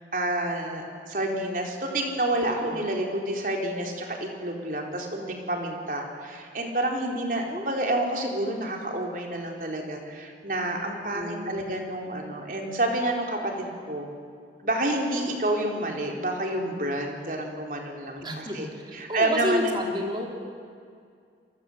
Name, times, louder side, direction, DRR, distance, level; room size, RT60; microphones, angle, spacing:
voice 1, 0.0-14.1 14.6-19.8, right 1 dB, 50° right, 1 dB, 4.2 m, -29 dB
voice 2, 2.5-2.8 7.5-7.7 11.1-11.7 18.2-20.3, left 1 dB, 25° right, 1 dB, 3.8 m, -31 dB
28.5 x 24.0 x 8.1 m, 2.3 s
head